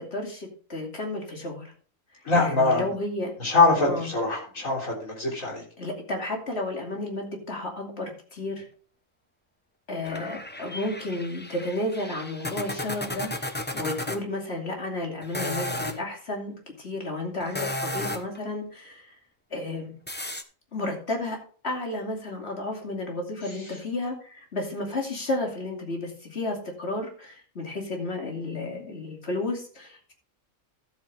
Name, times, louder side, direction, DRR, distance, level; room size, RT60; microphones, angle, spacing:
voice 1, 0.0-1.7 2.3-3.3 3.9-4.1 5.8-8.6 9.9-13.3 13.7-19.1 19.5-20.0 20.7-21.4 21.6-30.1, left 2 dB, 55° left, 1 dB, 2.9 m, -32 dB
voice 2, 2.2-2.9 3.4-5.6, left 3 dB, 85° left, -2 dB, 4.0 m, -23 dB
sound 1, 10.1-14.2 15.2-16.0 17.4-18.4 20.1-20.4, left 1 dB, 10° left, 0.6 m, -33 dB
13.0 x 7.8 x 3.5 m, 0.43 s
omnidirectional pair, 1.4 m